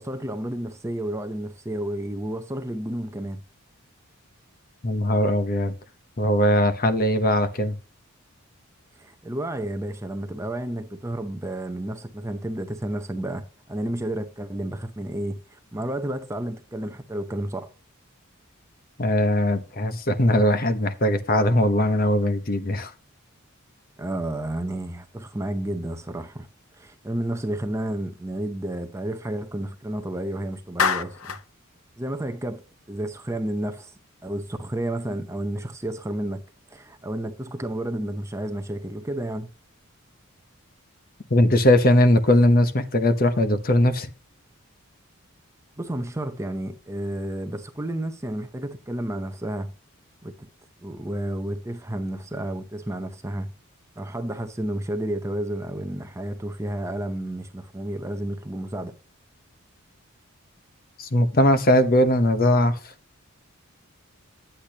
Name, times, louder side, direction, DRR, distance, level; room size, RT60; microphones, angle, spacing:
voice 1, 0.0-3.4 9.0-17.7 24.0-26.5 26.7-31.3 32.0-32.6 32.9-33.9 34.2-36.4 36.7-39.5 45.8-49.7 50.2-50.5 50.8-53.5 54.0-58.9, right 1 dB, 15° right, 0.7 m, -31 dB
voice 2, 4.8-5.7 6.2-7.7 19.0-22.9 41.3-44.1 61.0-62.9, left 1 dB, 40° left, 0.9 m, -20 dB
Clapping, 30.8-31.5, left 6 dB, 75° left, 0.7 m, -24 dB
10.0 x 8.2 x 2.9 m
head